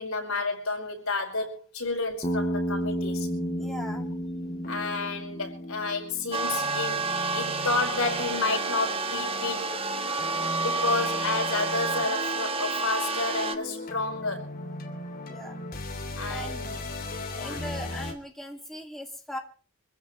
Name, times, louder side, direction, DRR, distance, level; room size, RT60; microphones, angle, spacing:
voice 1, 0.0-3.3 4.7-7.1 7.3-9.7 10.6-14.5 16.2-16.8 17.3-17.6, left 3 dB, 85° left, 5.0 m, -31 dB
Bass guitar, 2.2-6.5, equal, 25° left, 7.5 m, -32 dB
sound 1, 3.2-18.1, left 1 dB, 45° left, 2.9 m, -39 dB
voice 2, 3.6-4.1 10.8-10.9 15.3-15.5 16.3-16.6 17.3-19.4, equal, ahead, 2.4 m, -39 dB
sound 2, 6.3-13.6, right 3 dB, 25° right, 1.2 m, -29 dB
25.0 x 15.5 x 3.2 m
head